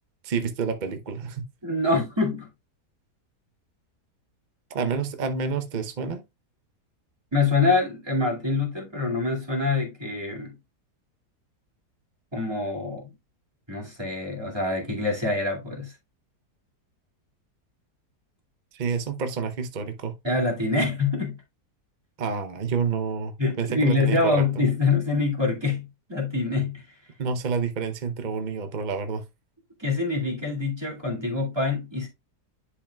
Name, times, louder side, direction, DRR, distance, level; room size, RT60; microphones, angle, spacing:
voice 1, 0.2-1.4 4.7-6.2 18.7-20.1 22.2-24.6 27.2-29.2, right 5 dB, 45° right, 0.6 m, -29 dB
voice 2, 1.6-2.5 7.3-10.5 12.3-13.1 13.7-15.9 20.2-21.4 23.4-26.8 29.8-32.1, left 3 dB, 15° right, 2.2 m, -25 dB
10.5 x 4.9 x 2.3 m
omnidirectional pair, 1.7 m